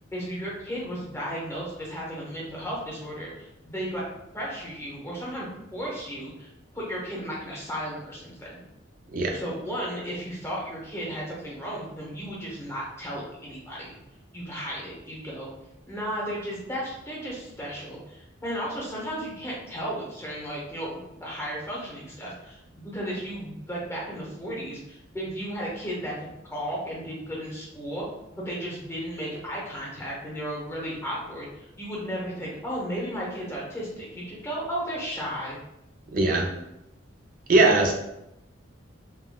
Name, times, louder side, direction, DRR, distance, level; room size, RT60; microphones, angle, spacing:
voice 1, 0.1-4.0 4.3-6.5 6.7-8.6 9.3-13.9 14.3-15.5 15.9-28.0 28.3-35.6, equal, 15° left, -5 dB, 0.8 m, -34 dB
voice 2, 36.1-36.5 37.5-37.9, right 2 dB, 45° right, 1 dB, 0.4 m, -20 dB
3.5 x 2.1 x 2.2 m, 0.87 s
head